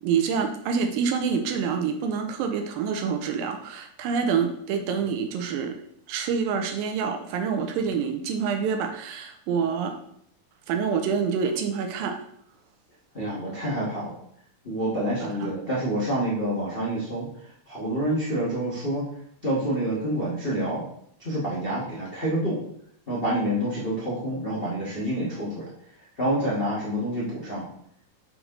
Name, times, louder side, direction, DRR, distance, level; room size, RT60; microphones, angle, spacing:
voice 1, 0.0-5.8 6.1-10.0 10.7-12.2 15.4-15.5, right 6 dB, 80° right, 6 dB, 2.4 m, -27 dB
voice 2, 13.1-14.1 14.6-17.3 17.7-19.0 19.4-20.8 21.2-22.6 23.1-25.7 26.2-27.6, right 1 dB, 50° left, -7 dB, 0.6 m, -27 dB
6.5 x 4.7 x 3.8 m, 0.68 s
omnidirectional pair, 4.2 m